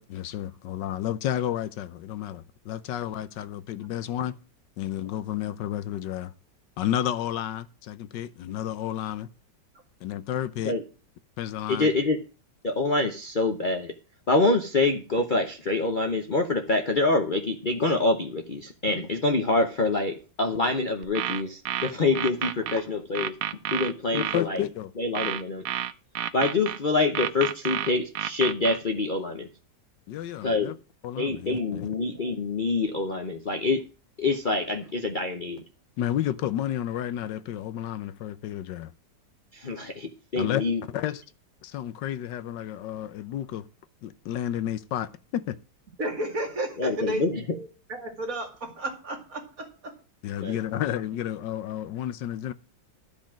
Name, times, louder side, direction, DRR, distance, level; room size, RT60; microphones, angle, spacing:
voice 1, 0.0-4.4 4.8-6.3 6.8-9.3 10.0-10.7 11.4-11.9 24.1-24.9 30.1-30.8 31.0-31.9 36.0-38.9 40.4-40.6 40.9-41.2 41.6-43.7 44.0-45.6 50.2-52.5, left 11 dB, 75° left, 1.4 m, -31 dB
voice 2, 11.7-12.2 12.6-13.9 14.3-23.4 23.7-24.6 25.0-25.6 26.3-29.5 30.4-30.7 31.2-33.8 34.2-35.6 39.5-40.8 46.8-47.4 50.4-50.6, left 3 dB, 35° left, 0.8 m, -26 dB
sound 1, 21.0-22.8 23.1-24.4 25.1-26.8 27.1-28.8, right 11 dB, 65° right, 0.9 m, -30 dB
voice 3, 46.0-49.9, right 1 dB, 50° right, 2.8 m, -33 dB
12.5 x 5.2 x 7.3 m
omnidirectional pair, 1.9 m